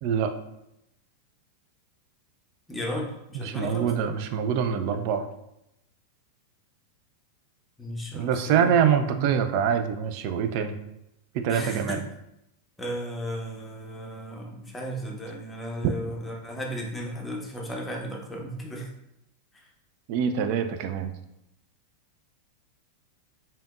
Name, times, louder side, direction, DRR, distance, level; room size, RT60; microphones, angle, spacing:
voice 1, 2.7-3.9 7.8-8.7 9.1-9.4 11.5-12.0 12.8-18.9, equal, 10° left, -1 dB, 0.7 m, -35 dB
voice 2, 3.3-5.3 8.1-10.8 11.4-12.0 15.8-15.9 20.1-21.1, right 7 dB, 45° right, 7 dB, 0.3 m, -25 dB
3.5 x 2.8 x 2.4 m, 0.84 s
figure-of-eight pair, 90°, 0 cm